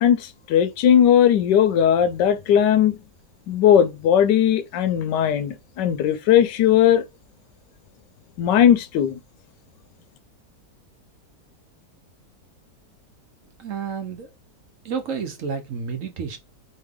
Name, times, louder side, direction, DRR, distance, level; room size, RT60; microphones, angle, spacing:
voice 1, 0.0-2.9 3.5-7.0 8.4-9.2, left 9 dB, 85° left, 1.3 m, -18 dB
voice 2, 13.6-14.3 14.8-16.4, right 6 dB, 55° right, 1.0 m, -30 dB
3.9 x 3.2 x 3.6 m
omnidirectional pair, 1.8 m